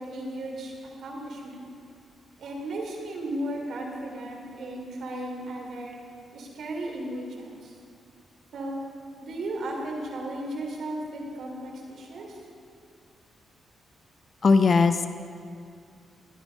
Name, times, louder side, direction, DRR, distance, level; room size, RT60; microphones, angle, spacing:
voice 1, 0.0-1.7 2.4-5.9 6.3-7.7 8.5-8.8 9.2-12.4, right 1 dB, 70° right, -1 dB, 3.4 m, -35 dB
voice 2, 14.4-15.1, left 4 dB, 50° left, 9 dB, 0.7 m, -19 dB
19.0 x 9.7 x 5.3 m, 2.3 s
cardioid pair, 65°, 0 cm